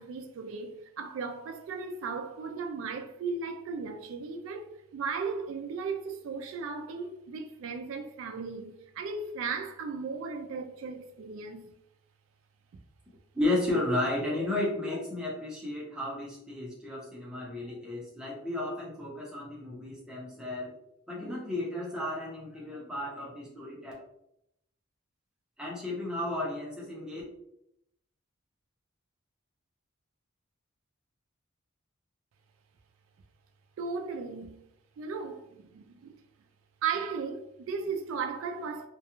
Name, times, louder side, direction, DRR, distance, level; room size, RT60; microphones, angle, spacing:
voice 1, 0.0-11.7 33.8-34.6 35.0-36.2 36.8-38.9, right 5 dB, 75° right, 0.3 m, -36 dB
voice 2, 13.3-20.7 21.1-23.9 25.6-27.2, left 1 dB, 5° right, 0.7 m, -33 dB
2.4 x 2.2 x 2.9 m
head